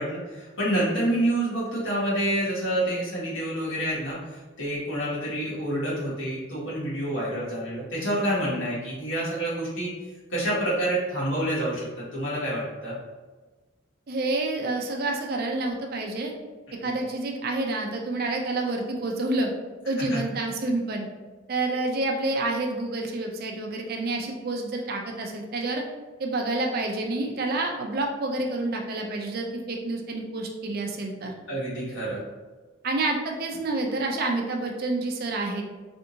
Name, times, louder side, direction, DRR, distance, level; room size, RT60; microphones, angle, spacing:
voice 1, 0.0-9.9 10.3-13.0 16.8-16.9 20.0-20.2 31.5-32.2, right 1 dB, 75° left, -8 dB, 1.5 m, -28 dB
voice 2, 14.1-16.3 16.8-19.5 19.9-21.1 21.5-25.8 26.2-31.3 32.8-35.6, right 2 dB, 50° right, 2 dB, 0.5 m, -28 dB
3.4 x 2.6 x 2.8 m, 1.3 s
head